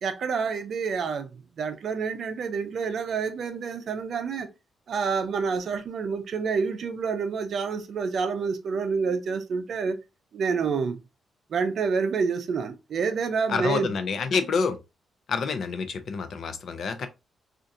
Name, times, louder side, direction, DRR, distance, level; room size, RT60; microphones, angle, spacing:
voice 1, 0.0-4.5 4.9-10.0 10.3-11.0 11.5-13.9 14.3-14.4, right 5 dB, 50° right, 0.5 m, -28 dB
voice 2, 13.5-14.8 15.3-17.1, left 5 dB, 50° left, 0.5 m, -27 dB
4.1 x 2.5 x 2.5 m
wide cardioid pair, 165°, 0 cm